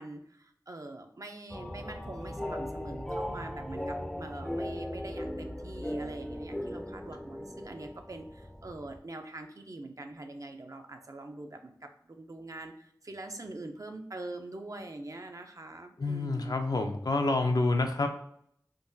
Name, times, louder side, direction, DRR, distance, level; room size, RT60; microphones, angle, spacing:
voice 1, 0.0-16.6, right 2 dB, 50° right, 5 dB, 0.4 m, -44 dB
sound 1, 1.5-9.0, left 1 dB, 10° left, 0.4 m, -38 dB
voice 2, 16.0-18.1, left 2 dB, 65° left, 4 dB, 0.5 m, -28 dB
3.7 x 2.2 x 2.6 m, 0.69 s
wide cardioid pair, 40°, 7 cm